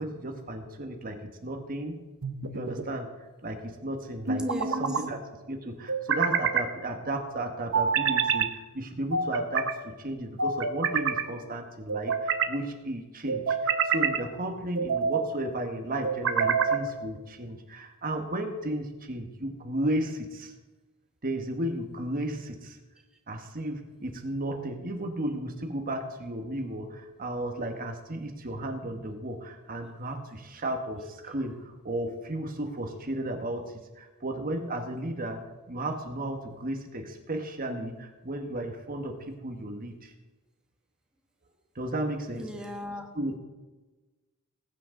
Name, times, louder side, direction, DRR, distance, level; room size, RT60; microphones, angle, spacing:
voice 1, 0.0-2.0 2.5-3.1 3.4-5.2 5.5-20.5 21.2-22.8 23.3-40.1 41.7-42.5 43.1-43.4, right 1 dB, 40° right, 4 dB, 1.2 m, -34 dB
sound 1, 2.2-2.9 4.3-5.0 5.9-6.7 7.7-8.5 9.1-9.7 10.4-11.2 11.9-12.5 13.3-14.2 14.8-15.3 16.0-16.8, right 6 dB, 60° right, 0.9 m, -27 dB
voice 2, 4.4-5.0 42.3-43.1, equal, 5° right, 1 dB, 1.3 m, -37 dB
19.5 x 8.9 x 3.8 m, 1.2 s
head